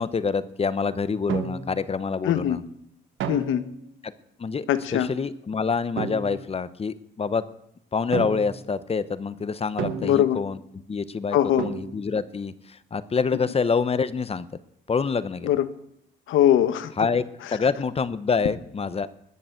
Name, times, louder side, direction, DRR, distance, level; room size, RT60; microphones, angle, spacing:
voice 1, 0.0-2.6 4.0-4.1 4.4-4.7 4.9-7.4 7.9-10.6 10.9-14.5 14.9-15.5 17.0-17.2 17.5-19.1, left 5 dB, 30° left, 15 dB, 0.8 m, -26 dB
sound 1, 1.3-1.9 3.2-3.9 6.0-6.5 8.1-8.7 9.8-10.5 11.6-12.2, right 7 dB, 75° right, 1.2 m, -32 dB
voice 2, 2.2-2.6 3.3-3.6 4.7-5.1 10.0-10.4 11.3-11.7 15.4-15.7 16.3-16.9, left 11 dB, 80° left, 13 dB, 1.0 m, -21 dB
20.5 x 6.9 x 7.7 m, 0.76 s
cardioid pair, 90°, 20 cm